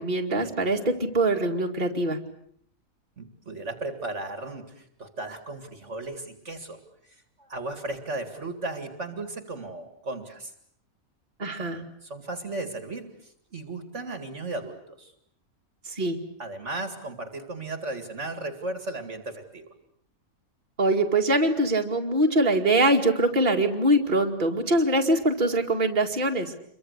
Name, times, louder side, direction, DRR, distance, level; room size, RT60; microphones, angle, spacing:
voice 1, 0.0-2.2 11.4-11.8 15.9-16.2 20.8-26.5, right 1 dB, 35° right, 1 dB, 2.5 m, -23 dB
voice 2, 3.2-6.8 7.4-10.5 11.6-11.7 12.0-15.1 16.4-19.7, right 2 dB, 55° right, 8 dB, 2.5 m, -35 dB
28.0 x 23.5 x 8.1 m, 0.69 s
omnidirectional pair, 1.5 m